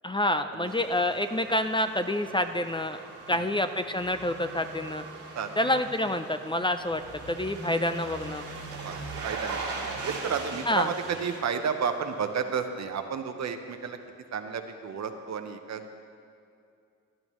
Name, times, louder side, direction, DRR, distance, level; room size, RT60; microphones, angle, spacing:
voice 1, 0.0-3.0 3.3-5.0 5.6-7.0 7.3-8.5 10.7-10.9, left 1 dB, 15° left, 8 dB, 0.5 m, -27 dB
sound 1, 0.7-12.6 12.9-13.0, right 3 dB, 85° right, 2.3 m, -40 dB
voice 2, 8.8-9.6 10.0-14.0 14.3-15.8, right 6 dB, 60° right, 7 dB, 1.0 m, -32 dB
17.5 x 10.5 x 3.1 m, 2.4 s
cardioid pair, 65°, 31 cm